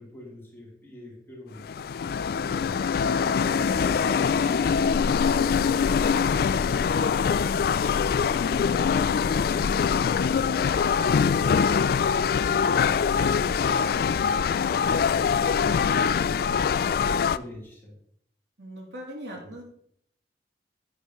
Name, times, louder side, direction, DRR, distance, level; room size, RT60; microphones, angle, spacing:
voice 1, 0.0-7.7 16.7-18.0 19.3-19.5, equal, 15° left, -5 dB, 3.5 m, -45 dB
sound 1, 1.6-17.4, left 6 dB, 55° left, 0.3 m, -23 dB
voice 2, 7.8-8.2 18.6-19.6, equal, 75° right, -2 dB, 3.0 m, -41 dB
10.0 x 9.5 x 3.1 m, 0.66 s
head